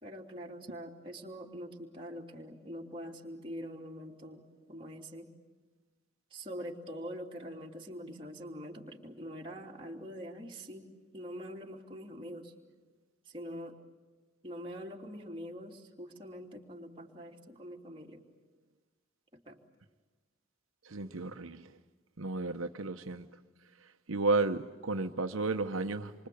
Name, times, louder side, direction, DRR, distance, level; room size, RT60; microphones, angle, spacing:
voice 1, 0.0-4.4 4.7-5.3 6.3-12.5 13.2-13.8 14.4-18.2 19.5-19.6, equal, 25° right, 3.0 m, -44 dB
voice 2, 20.9-21.7 22.2-23.3 24.1-26.3, right 3 dB, 90° right, 1.0 m, -33 dB
28.0 x 24.5 x 8.5 m
head